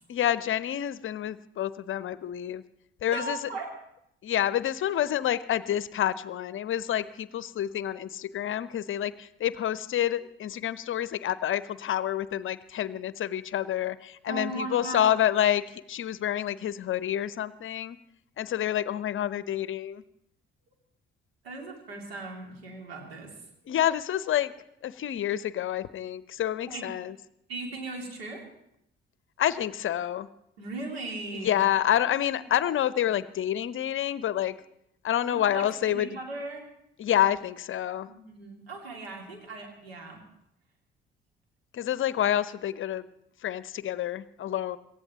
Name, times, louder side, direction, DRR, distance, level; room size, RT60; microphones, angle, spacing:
voice 1, 0.1-2.6 3.0-3.4 4.2-18.0 18.4-20.0 23.7-24.5 24.8-27.1 29.4-30.3 31.3-34.6 35.0-36.1 37.0-38.1 41.7-43.0 43.4-44.8, left 11 dB, 45° left, 17 dB, 0.7 m, -28 dB
voice 2, 3.0-3.7 14.3-15.1 21.4-23.3 26.7-26.8 27.5-28.4 30.6-31.6 35.2-36.7 38.1-40.2, right 2 dB, 80° right, 1 dB, 2.6 m, -38 dB
26.5 x 14.5 x 3.0 m, 0.78 s
figure-of-eight pair, 40°, 30 cm